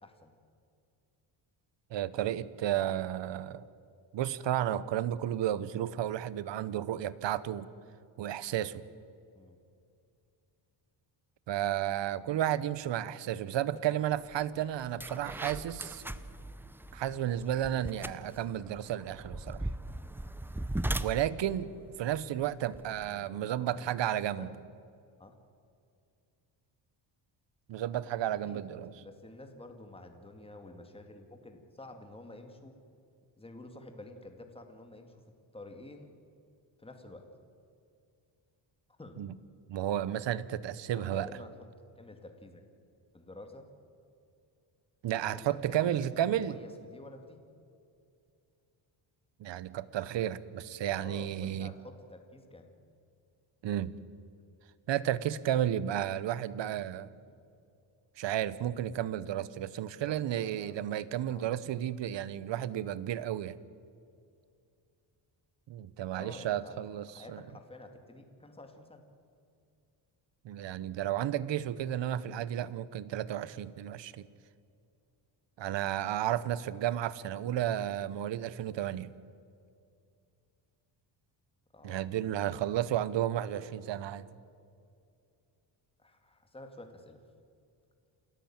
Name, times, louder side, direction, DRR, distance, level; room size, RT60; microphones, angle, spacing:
voice 1, 0.0-0.3 9.3-9.6 12.2-12.4 13.7-13.8 14.9-15.8 23.0-23.9 24.4-24.6 25.2-25.4 28.4-28.6 28.9-32.7 33.4-35.2 35.5-36.1 36.8-37.3 38.9-39.2 40.9-41.5 42.0-42.7 43.1-43.7 45.3-47.4 51.0-52.7 56.9-57.4 59.9-60.8 61.2-61.5 66.1-66.8 67.1-69.0 77.2-77.7 81.7-82.0 82.8-82.9 83.6-83.7 86.0-87.2, left 2 dB, 10° left, 5 dB, 2.3 m, -50 dB
voice 2, 1.9-3.6 4.1-7.7 8.2-8.8 11.5-16.0 16.9-19.7 21.0-21.7 22.0-24.5 27.7-28.9 39.2-39.3 39.7-41.3 45.0-46.6 49.4-51.7 53.6-53.9 54.9-57.1 58.2-63.5 65.7-67.4 70.4-74.3 75.6-79.1 81.8-84.3, right 11 dB, 65° right, 17 dB, 1.0 m, -32 dB
sound 1, 14.3-14.4 14.8-23.1, right 1 dB, 5° right, 0.6 m, -39 dB
28.0 x 13.5 x 8.8 m, 2.5 s
cardioid pair, 120°, 47 cm